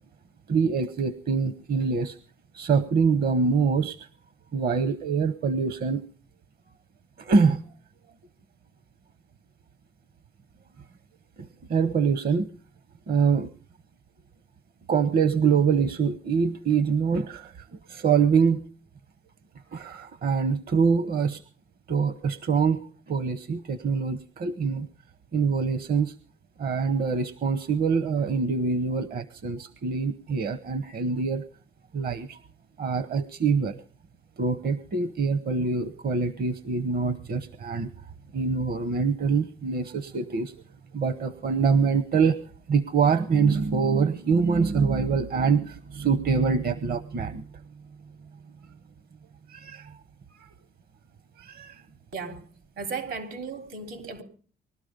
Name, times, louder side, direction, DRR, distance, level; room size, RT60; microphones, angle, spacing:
voice 1, 0.5-2.2 2.5-4.1 4.5-6.1 7.2-7.6 11.4-12.5 13.1-13.5 14.9-18.6 19.7-21.4 21.9-24.9 25.3-26.1 26.6-31.4 31.9-32.4 32.8-33.8 34.4-37.9 38.3-40.5 40.9-42.4 42.7-47.4 49.5-50.0 50.3-50.5 51.4-51.8, right 5 dB, 50° right, 0.9 m, -25 dB
voice 2, 52.8-54.2, right 4 dB, 80° right, 3.5 m, -35 dB
20.5 x 12.5 x 5.2 m
cardioid pair, 90°, 20 cm